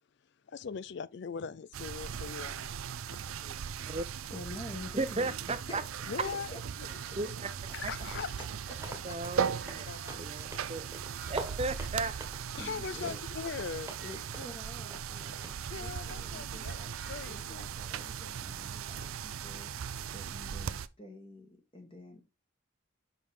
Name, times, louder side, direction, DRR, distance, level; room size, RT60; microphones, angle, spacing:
voice 1, 0.5-2.6 3.1-3.2 6.1-6.6 7.7-8.6 9.9-10.2 12.6-14.0 15.7-17.7, left 6 dB, 55° left, 0.4 m, -40 dB
sound 1, 1.7-20.9, right 7 dB, 80° right, 0.4 m, -39 dB
voice 2, 4.3-5.8 6.1-6.6 7.1-7.2 8.9-9.0 10.6-11.0 12.6-13.2 14.0-16.9 17.3-19.7 20.1-22.2, left 1 dB, 25° left, 1.3 m, -48 dB
voice 3, 5.0-5.8 7.1-7.5 7.8-7.9 9.0-10.9 11.3-12.2, right 3 dB, 30° right, 0.6 m, -35 dB
sound 2, 5.7-12.8 13.3-13.5 13.8-14.5 14.7-15.4 16.0-17.5 18.1-19.7, right 4 dB, 55° right, 1.2 m, -54 dB
sound 3, 8.1-14.1 14.3-14.6 14.9-15.0 15.4-15.6 16.1-16.3, right 2 dB, 10° right, 1.4 m, -46 dB
5.8 x 5.4 x 4.9 m
head